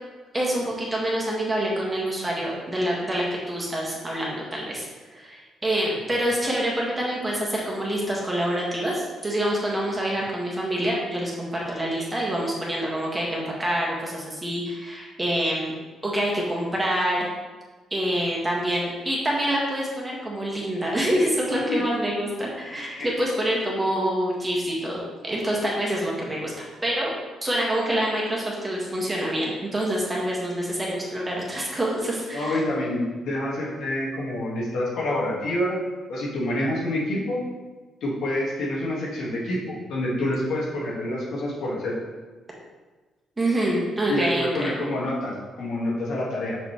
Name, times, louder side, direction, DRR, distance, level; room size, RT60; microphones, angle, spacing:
voice 1, 0.3-15.7 16.0-17.2 17.9-26.5 26.8-27.1 27.4-32.6 43.4-44.7, right 1 dB, 20° right, -3 dB, 1.8 m, -26 dB
voice 2, 22.7-23.1 32.3-35.8 36.1-37.4 38.0-41.9 44.1-46.6, left 1 dB, 75° left, -5 dB, 1.7 m, -27 dB
6.1 x 5.3 x 3.2 m, 1.3 s
cardioid pair, 90°, 0 cm